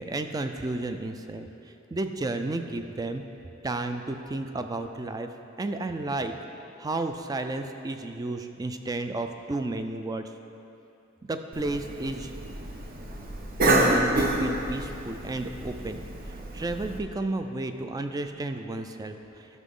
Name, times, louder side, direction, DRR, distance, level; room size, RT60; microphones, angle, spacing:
voice 1, 0.0-1.5 1.9-3.2 3.6-5.3 5.6-6.3 6.8-10.2 11.3-12.3 13.6-16.0 16.5-19.5, right 2 dB, 20° right, 7 dB, 0.3 m, -32 dB
Cough, 11.5-17.0, right 1 dB, 45° right, 0.8 m, -28 dB
12.0 x 6.1 x 3.7 m, 2.9 s
head